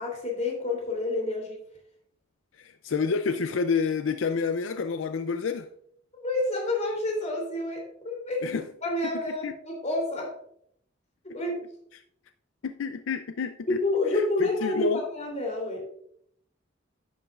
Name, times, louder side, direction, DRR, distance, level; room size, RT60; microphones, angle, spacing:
voice 1, 0.0-1.6 6.1-8.5 8.8-10.3 11.2-11.6 13.8-15.9, left 2 dB, 35° left, 3.0 m, -29 dB
voice 2, 2.6-5.7 8.4-8.6 9.0-9.5 12.6-13.8 14.1-15.0, left 5 dB, 80° left, 0.5 m, -29 dB
10.5 x 8.5 x 2.4 m
head